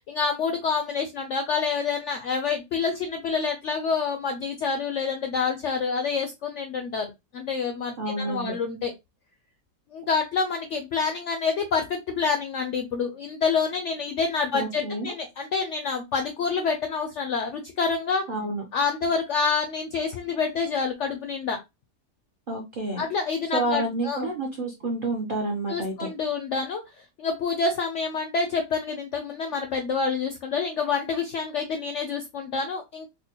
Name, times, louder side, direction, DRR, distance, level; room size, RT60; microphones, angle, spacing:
voice 1, 0.0-8.9 9.9-18.3 18.7-21.6 23.0-24.3 25.7-33.1, left 5 dB, 75° left, 5 dB, 0.6 m, -27 dB
voice 2, 8.0-8.5 14.5-15.1 18.3-18.6 22.5-23.0 23.5-26.1, right 2 dB, 60° right, 1 dB, 0.5 m, -29 dB
4.1 x 2.2 x 2.8 m, 0.22 s
omnidirectional pair, 1.7 m